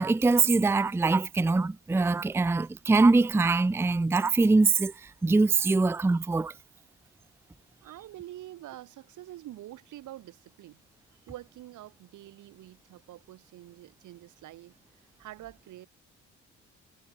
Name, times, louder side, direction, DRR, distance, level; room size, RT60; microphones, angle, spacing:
voice 1, 0.0-6.5, right 3 dB, 10° right, 0.5 m, -23 dB
voice 2, 7.8-10.8 11.1-14.8 15.2-15.9, right 15 dB, 80° right, 1.6 m, -46 dB
cardioid pair, 90°, 30 cm